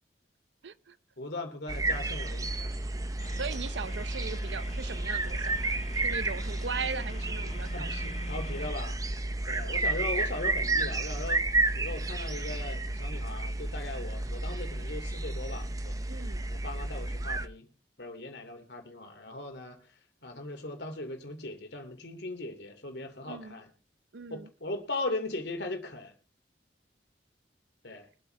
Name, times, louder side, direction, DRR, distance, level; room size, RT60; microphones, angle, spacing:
voice 1, 0.6-1.0 3.3-7.9 16.1-16.5 23.3-23.6 24.1-24.5, right 5 dB, 80° right, 0.7 m, -39 dB
voice 2, 1.2-2.7 7.7-9.0 9.5-11.4 11.7-16.0 16.5-17.7 18.0-19.8 20.2-23.7 24.3-26.1 27.8-28.1, left 2 dB, 70° left, 2.7 m, -38 dB
sound 1, 1.7-17.5, right 2 dB, 20° right, 0.7 m, -32 dB
sound 2, 3.2-8.7, left 3 dB, 35° left, 0.6 m, -46 dB
23.0 x 8.6 x 3.3 m
head